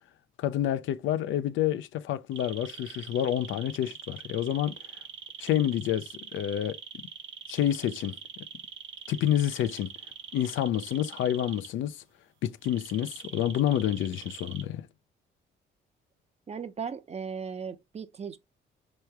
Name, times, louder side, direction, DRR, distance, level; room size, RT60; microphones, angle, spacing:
voice 1, 0.4-4.8 5.4-6.8 7.5-8.2 9.1-9.9 10.3-12.0 12.4-14.9, left 11 dB, 80° left, 0.5 m, -28 dB
sound 1, 2.3-11.7 12.6-14.6, right 7 dB, 80° right, 1.0 m, -43 dB
voice 2, 16.5-18.4, right 6 dB, 35° right, 0.6 m, -37 dB
4.6 x 3.1 x 3.2 m
cardioid pair, 90°, 20 cm